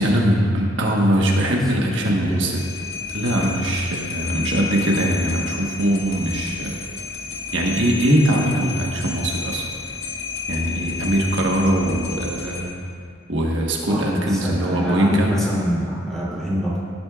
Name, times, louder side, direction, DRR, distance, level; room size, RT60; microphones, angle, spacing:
voice 1, 0.0-2.6 3.1-6.8 7.5-9.7 10.5-12.7 13.3-15.3, right 1 dB, 70° right, -1 dB, 1.3 m, -21 dB
voice 2, 1.4-2.5 13.9-16.8, equal, ahead, -9 dB, 3.1 m, -25 dB
sound 1, 2.6-12.6, left 5 dB, 70° left, 1.7 m, -31 dB
17.0 x 10.0 x 2.4 m, 2.2 s
head